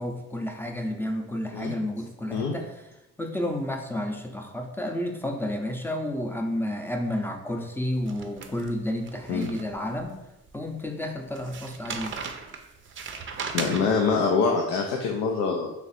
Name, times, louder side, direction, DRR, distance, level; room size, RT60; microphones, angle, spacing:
voice 1, 0.0-2.7 3.2-10.2 10.5-12.1, left 1 dB, 5° left, 2 dB, 0.5 m, -31 dB
sound 1, 8.0-10.0 10.5-10.6 11.4-14.2, right 5 dB, 40° right, 0.5 m, -37 dB
voice 2, 13.5-15.7, left 5 dB, 90° left, 1 dB, 0.5 m, -25 dB
3.2 x 2.5 x 4.1 m, 0.92 s
cardioid pair, 90°, 30 cm